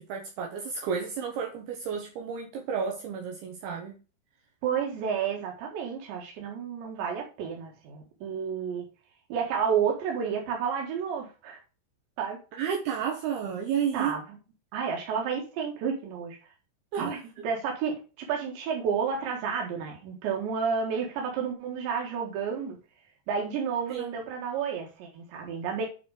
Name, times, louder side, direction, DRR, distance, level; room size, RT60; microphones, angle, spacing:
voice 1, 0.0-4.0 12.5-14.2 16.9-17.1 17.4-17.5 23.9-24.1, right 7 dB, 70° right, 3.1 m, -32 dB
voice 2, 4.6-8.9 9.3-11.6 12.2-12.4 13.9-14.2 14.7-16.4 17.0-17.2 17.4-18.0 18.3-22.8 23.3-25.9, right 6 dB, 85° right, 4.0 m, -30 dB
9.2 x 5.1 x 4.9 m
omnidirectional pair, 5.0 m